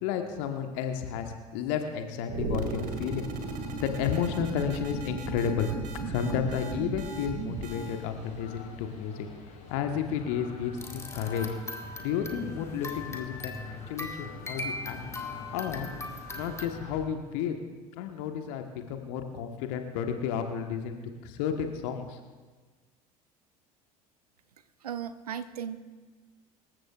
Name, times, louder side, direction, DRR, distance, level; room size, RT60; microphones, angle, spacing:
voice 1, 0.0-3.3 3.8-5.7 6.0-9.3 9.7-11.5 12.0-15.0 15.5-15.9 16.3-17.6 17.9-22.2, left 8 dB, 55° left, 6 dB, 1.3 m, -32 dB
sound 1, 2.3-8.1, right 3 dB, 45° right, 2.1 m, -35 dB
sound 2, 6.5-17.1, left 3 dB, 35° left, 5.6 m, -46 dB
sound 3, 10.8-16.7, left 2 dB, 15° left, 1.7 m, -40 dB
voice 2, 24.8-25.8, right 8 dB, 75° right, 12 dB, 0.8 m, -36 dB
25.0 x 14.5 x 2.4 m, 1.4 s
figure-of-eight pair, 65°, 20 cm